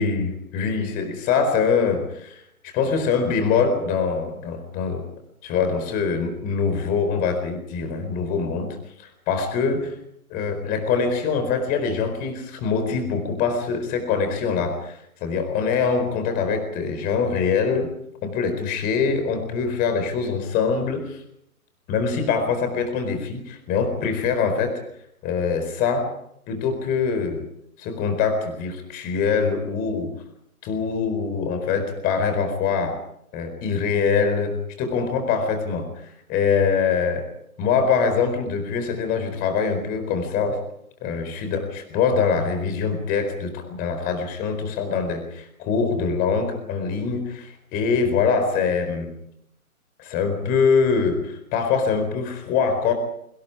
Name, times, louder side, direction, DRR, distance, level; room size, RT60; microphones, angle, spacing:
voice 1, 0.0-2.4 2.7-5.1 5.4-9.9 10.3-17.9 18.2-21.2 21.9-24.8 25.2-26.1 26.5-27.5 27.8-30.1 30.6-33.0 33.3-37.3 37.6-40.6 41.0-49.1 50.0-52.9, left 5 dB, 20° left, 7 dB, 4.4 m, -24 dB
30.0 x 25.0 x 5.0 m, 0.73 s
figure-of-eight pair, 135°, 44 cm